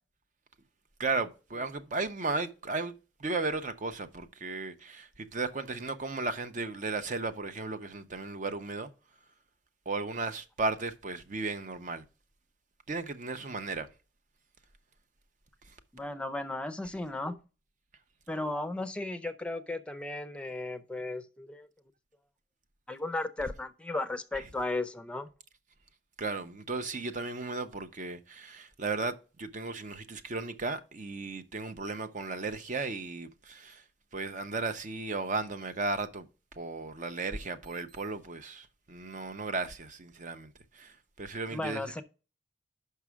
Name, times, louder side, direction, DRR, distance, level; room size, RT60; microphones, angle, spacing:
voice 1, 1.0-8.9 9.9-12.0 12.9-13.9 24.3-24.4 26.2-33.8 34.1-36.3 36.6-42.0, right 3 dB, 45° right, 0.6 m, -35 dB
voice 2, 15.9-17.4 18.3-21.7 22.9-25.3 41.5-42.0, left 2 dB, 5° left, 0.5 m, -35 dB
5.6 x 4.7 x 6.1 m
head